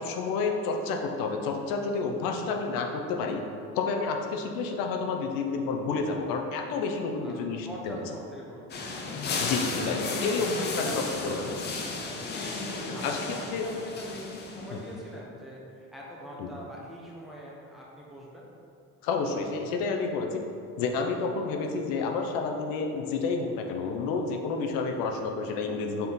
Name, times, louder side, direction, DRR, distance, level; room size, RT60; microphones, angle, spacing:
voice 1, 0.0-3.4 3.8-8.0 9.4-11.4 13.0-13.6 14.7-14.8 16.4-16.5 19.0-20.4 20.8-26.1, left 4 dB, 90° left, 3 dB, 0.7 m, -30 dB
voice 2, 7.6-9.8 10.6-12.4 12.9-18.5, equal, ahead, -5 dB, 0.7 m, -43 dB
sound 1, 8.7-15.0, left 3 dB, 30° left, 0.5 m, -34 dB
5.6 x 4.4 x 3.8 m, 2.4 s
cardioid pair, 165°, 33 cm